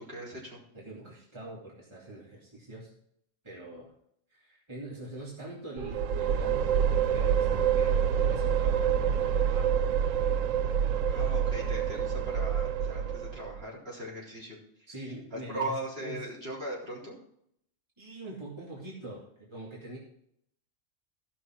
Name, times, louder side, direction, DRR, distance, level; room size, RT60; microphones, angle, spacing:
voice 1, 0.0-0.6 11.0-14.6 14.9-17.2, right 1 dB, 50° right, -5 dB, 4.0 m, -39 dB
voice 2, 0.7-2.9 3.4-3.9 4.3-9.7 14.9-15.7 16.0-16.2 18.0-20.0, right 2 dB, 20° right, -5 dB, 2.6 m, -44 dB
sound 1, 5.8-13.6, right 8 dB, 85° right, 1.0 m, -27 dB
16.0 x 6.2 x 4.6 m, 0.70 s
omnidirectional pair, 1.3 m